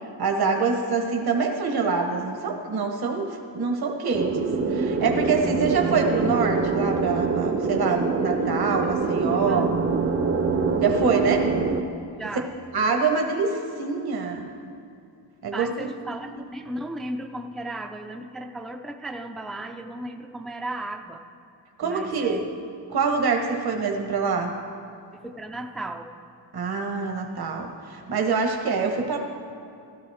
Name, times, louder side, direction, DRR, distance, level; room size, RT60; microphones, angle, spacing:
voice 1, 0.2-9.7 10.8-11.4 12.7-14.5 15.4-15.9 21.8-22.4 22.9-24.5 26.5-29.2, right 5 dB, 55° right, 3 dB, 1.2 m, -25 dB
sound 1, 4.1-11.8, right 4 dB, 35° right, 0.7 m, -24 dB
voice 2, 8.8-9.7 11.2-11.7 12.2-12.5 15.5-21.2 21.8-22.6 25.2-26.1, right 1 dB, ahead, 4 dB, 0.4 m, -36 dB
15.5 x 12.5 x 3.5 m, 2.5 s
wide cardioid pair, 130°, 44 cm